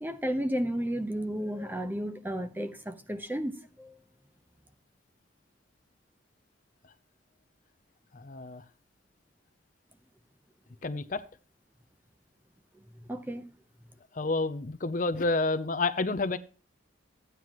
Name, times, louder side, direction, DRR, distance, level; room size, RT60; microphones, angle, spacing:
voice 1, 0.0-3.9 13.1-13.5, equal, 10° right, 0.9 m, -33 dB
voice 2, 8.1-8.6 10.8-11.2 14.1-16.4, left 3 dB, 45° left, 0.6 m, -29 dB
14.5 x 9.4 x 3.0 m
head